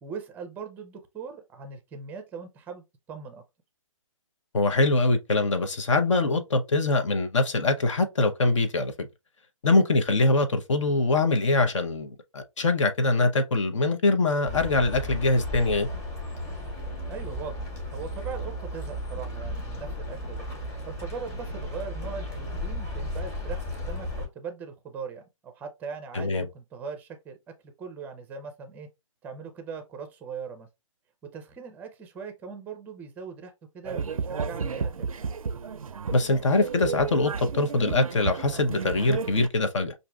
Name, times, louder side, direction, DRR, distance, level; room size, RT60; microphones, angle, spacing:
voice 1, 0.0-3.4 17.1-20.5 20.9-27.4 27.8-28.9 29.2-30.7 31.2-35.1, right 5 dB, 10° right, 0.5 m, -40 dB
voice 2, 4.5-9.1 9.6-15.9 26.1-26.5 36.1-39.9, left 2 dB, 60° left, 0.7 m, -23 dB
sound 1, 14.5-24.3, left 1 dB, 15° left, 1.1 m, -34 dB
sound 2, 33.8-39.5, right 5 dB, 85° right, 0.4 m, -32 dB
5.7 x 2.6 x 2.2 m
figure-of-eight pair, 140°, 17 cm